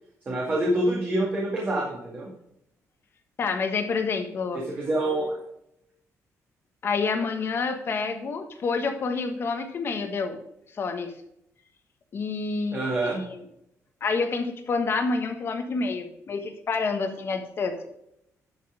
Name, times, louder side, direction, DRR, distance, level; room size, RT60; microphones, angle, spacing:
voice 1, 0.3-2.3 4.5-5.4 12.7-13.2, right 1 dB, 30° right, -2 dB, 2.1 m, -26 dB
voice 2, 3.4-4.6 6.8-10.4 10.8-11.1 12.1-13.4 14.0-17.9, left 4 dB, 40° left, 6 dB, 1.4 m, -28 dB
11.5 x 5.6 x 4.9 m, 0.79 s
cardioid pair, 165°, 6 cm